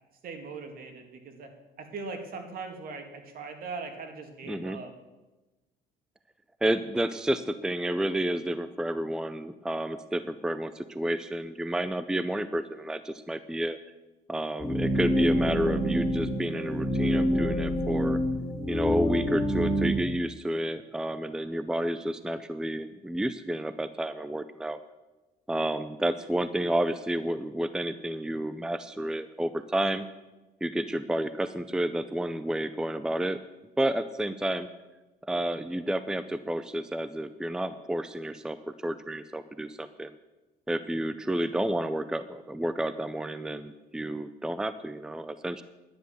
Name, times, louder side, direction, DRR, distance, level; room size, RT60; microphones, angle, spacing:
voice 1, 0.2-1.5 1.8-4.9, right 4 dB, 60° right, 4 dB, 2.4 m, -40 dB
voice 2, 4.5-4.8 6.6-13.8 14.3-18.2 18.7-24.8 25.5-30.1 30.6-33.4 33.8-34.7 35.2-38.6 38.8-40.1 40.7-45.6, right 1 dB, 5° right, 12 dB, 0.5 m, -30 dB
sound 1, 14.6-19.9, equal, 20° left, 4.7 m, -27 dB
11.0 x 10.5 x 6.9 m, 1.1 s
cardioid pair, 110°, 17 cm